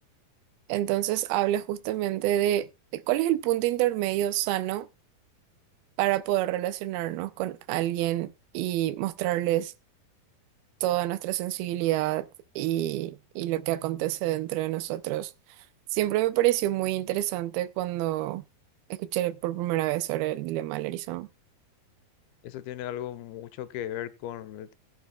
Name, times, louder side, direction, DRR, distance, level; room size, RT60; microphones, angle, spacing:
voice 1, 0.7-4.9 6.0-9.7 10.8-12.3 12.6-15.3 15.9-18.4 18.9-21.3, right 14 dB, 85° right, 2.5 m, -28 dB
voice 2, 22.4-24.7, left 12 dB, 90° left, 2.7 m, -36 dB
20.0 x 8.5 x 2.3 m
omnidirectional pair, 4.4 m